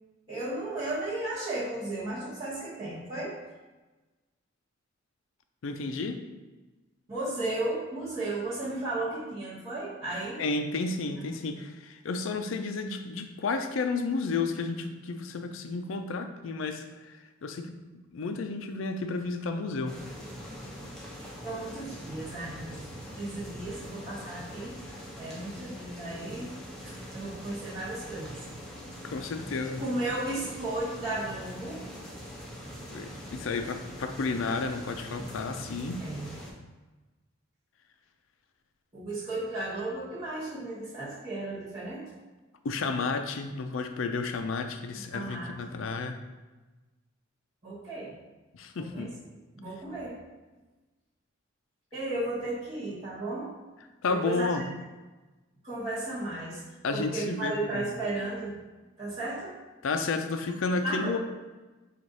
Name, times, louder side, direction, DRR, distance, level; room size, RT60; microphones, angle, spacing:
voice 1, 0.3-3.3 7.1-10.4 21.4-22.8 23.2-26.5 26.8-28.4 29.8-31.8 36.0-36.3 38.9-42.1 45.1-45.5 47.6-48.1 48.8-49.1 49.5-50.2 51.9-53.5 54.1-54.6 55.6-58.6 59.0-59.5 60.8-61.2, right 2 dB, 30° right, -12 dB, 1.0 m, -34 dB
voice 2, 5.6-6.2 10.4-17.7 18.1-20.0 29.0-29.8 32.9-36.0 42.6-46.2 48.5-49.1 54.0-54.7 56.8-57.9 59.8-61.2, left 4 dB, 75° left, 7 dB, 0.4 m, -32 dB
sound 1, 19.9-36.5, equal, 5° left, 0.7 m, -43 dB
4.7 x 2.4 x 4.0 m, 1.2 s
head